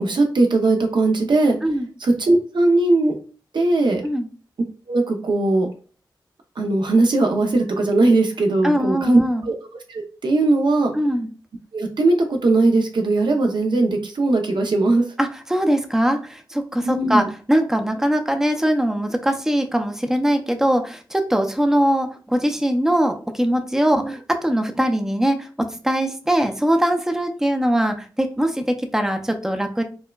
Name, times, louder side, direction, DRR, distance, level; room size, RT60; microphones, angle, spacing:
voice 1, 0.0-1.6 2.0-3.2 3.5-4.0 4.9-5.7 6.6-9.5 9.9-10.9 11.7-15.0 16.8-17.3 24.0-24.2, right 2 dB, 70° right, 3 dB, 0.6 m, -19 dB
voice 2, 8.6-9.5 11.0-11.3 15.2-29.8, equal, 5° right, 5 dB, 0.5 m, -21 dB
4.4 x 2.1 x 2.3 m, 0.38 s
cardioid pair, 60°, 8 cm